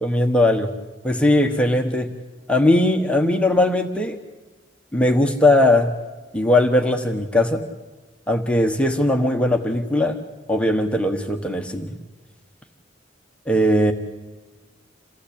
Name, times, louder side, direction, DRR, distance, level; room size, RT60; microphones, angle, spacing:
voice 1, 0.0-0.7 1.0-2.1 2.5-4.2 4.9-5.9 6.3-7.6 8.3-10.1 10.5-11.9 13.5-13.9, left 1 dB, 5° left, 4 dB, 1.2 m, -19 dB
28.0 x 16.0 x 8.7 m, 1.2 s
head